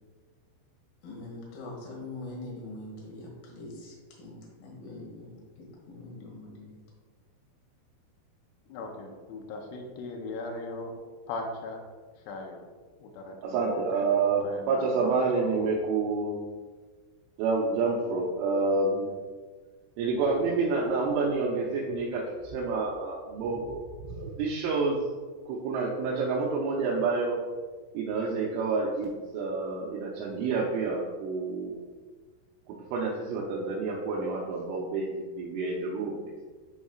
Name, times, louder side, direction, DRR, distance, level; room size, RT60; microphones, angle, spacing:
voice 1, 1.0-6.8, left 2 dB, 65° left, -3 dB, 2.5 m, -43 dB
voice 2, 8.7-10.9 11.3-11.8 12.2-12.6 13.0-15.7, left 2 dB, 80° left, 1 dB, 3.0 m, -39 dB
voice 3, 13.4-16.3 17.4-19.1 20.0-25.0 25.5-27.4 27.9-31.8 32.7-36.4, right 4 dB, 80° right, -4 dB, 2.9 m, -28 dB
10.0 x 4.2 x 2.4 m, 1.4 s
omnidirectional pair, 6.0 m